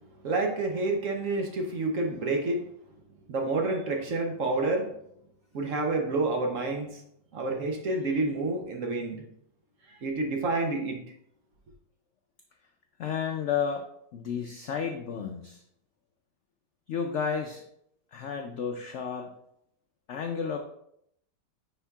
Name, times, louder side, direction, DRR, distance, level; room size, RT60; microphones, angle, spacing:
voice 1, 0.2-2.7 3.3-4.9 5.5-7.0 7.3-9.2 9.9-11.0, right 2 dB, 55° right, 3 dB, 1.0 m, -29 dB
voice 2, 13.0-15.6 16.9-17.6 18.1-19.3 20.1-20.6, left 6 dB, 85° left, 4 dB, 0.6 m, -32 dB
9.9 x 4.5 x 2.3 m, 0.74 s
omnidirectional pair, 1.9 m